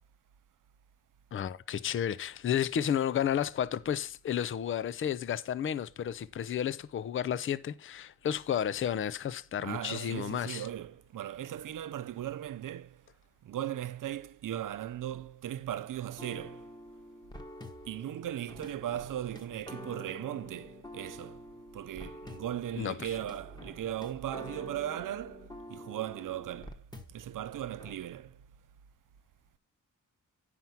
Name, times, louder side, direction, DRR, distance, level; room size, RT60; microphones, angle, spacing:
voice 1, 1.3-10.6 22.8-23.1, left 9 dB, 40° left, 0.5 m, -32 dB
voice 2, 9.6-13.0 13.4-16.7 17.9-21.4 21.7-26.8 27.1-28.4, right 11 dB, 75° right, 0.6 m, -38 dB
sound 1, 16.2-27.4 27.8-27.9, left 1 dB, 15° left, 1.1 m, -48 dB
9.3 x 5.8 x 5.8 m
wide cardioid pair, 140°, 32 cm